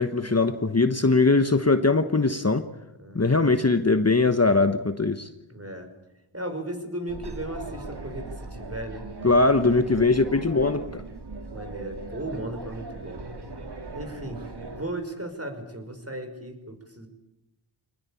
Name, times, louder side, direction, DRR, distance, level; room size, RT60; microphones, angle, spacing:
voice 1, 0.0-2.7 3.1-5.3 9.2-11.0, left 3 dB, 30° left, 9 dB, 1.2 m, -21 dB
voice 2, 3.0-3.5 5.5-5.9 6.3-9.1 9.9-10.0 10.8-10.9 11.5-13.2 13.9-17.1, right 1 dB, 30° right, 6 dB, 5.6 m, -36 dB
sound 1, 7.1-14.9, right 3 dB, 50° right, 2.6 m, -38 dB
24.5 x 19.5 x 8.5 m, 0.93 s
wide cardioid pair, 45°, 49 cm